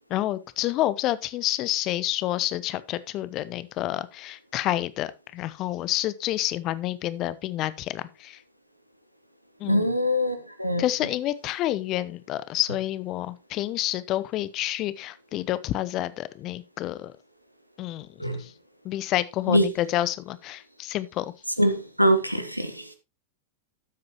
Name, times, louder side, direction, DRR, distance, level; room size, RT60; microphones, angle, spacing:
voice 1, 0.1-8.4 9.6-9.9 10.8-17.1 17.8-18.1 18.4-18.5 18.8-21.3, left 14 dB, 35° left, 0.8 m, -29 dB
voice 2, 9.7-10.8 18.2-18.4 19.5-19.7 21.6-22.9, equal, 90° right, 1.3 m, -23 dB
13.0 x 7.8 x 3.1 m
figure-of-eight pair, 90°, 0 cm